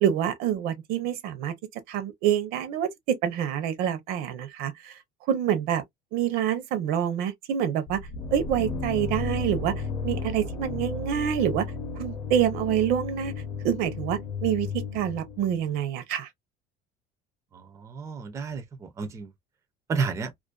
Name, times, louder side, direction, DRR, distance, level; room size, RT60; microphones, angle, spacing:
voice 1, 0.0-1.5 1.9-5.0 5.3-5.8 6.1-8.0 8.3-9.7 10.0-11.7 11.9-13.3 13.6-16.3, right 9 dB, 65° right, 0.6 m, -26 dB
sound 1, 7.9-15.7, left 4 dB, 30° left, 0.6 m, -34 dB
voice 2, 17.5-19.3 19.9-20.3, right 5 dB, 15° right, 0.4 m, -31 dB
2.4 x 2.2 x 2.3 m
cardioid pair, 150°, 17 cm